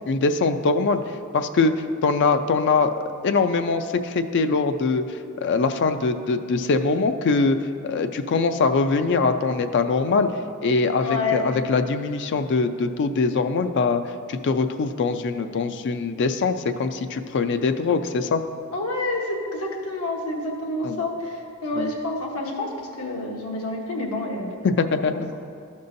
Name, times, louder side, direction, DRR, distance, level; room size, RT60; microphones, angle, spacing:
voice 1, 0.1-1.0 1.3-1.7 2.0-2.9 3.2-5.0 5.4-7.6 7.8-10.3 10.6-14.0 14.3-16.5 16.8-18.4 20.8-21.0 21.7-21.9 24.6-25.3, left 4 dB, 55° left, 9 dB, 0.4 m, -22 dB
voice 2, 11.0-11.4 18.7-24.6, left 2 dB, 80° left, 0 dB, 1.1 m, -28 dB
13.0 x 5.4 x 2.6 m, 2.5 s
head